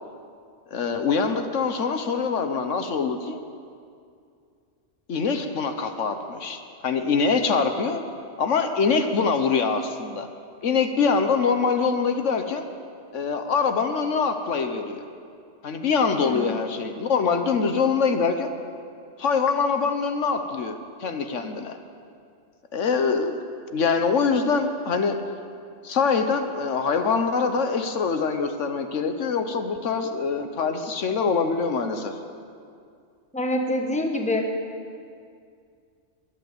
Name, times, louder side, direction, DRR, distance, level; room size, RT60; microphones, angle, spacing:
voice 1, 0.7-3.4 5.1-8.0 8.4-10.3 10.6-12.7 13.1-15.0 15.6-18.5 19.2-21.8 22.7-23.4 23.7-25.2 25.8-32.1, left 5 dB, 75° left, 7 dB, 1.3 m, -24 dB
voice 2, 16.2-16.7 33.3-34.4, left 1 dB, 5° left, 3 dB, 1.4 m, -26 dB
22.0 x 8.3 x 8.0 m, 2.3 s
omnidirectional pair, 1.3 m